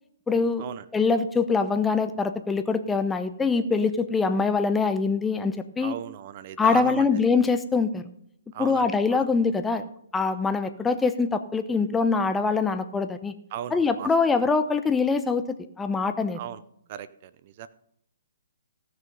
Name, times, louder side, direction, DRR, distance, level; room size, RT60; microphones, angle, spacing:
voice 1, 0.3-0.6 0.9-5.9 6.6-8.0 8.6-9.9 10.1-13.3 13.7-16.4, left 4 dB, 10° left, 9 dB, 0.8 m, -24 dB
voice 2, 5.8-7.1 8.5-9.2 13.5-14.1 16.3-16.6 16.9-17.7, right 11 dB, 40° right, 15 dB, 0.6 m, -37 dB
17.0 x 6.5 x 5.4 m, 0.73 s
hypercardioid pair, 140°, 0 cm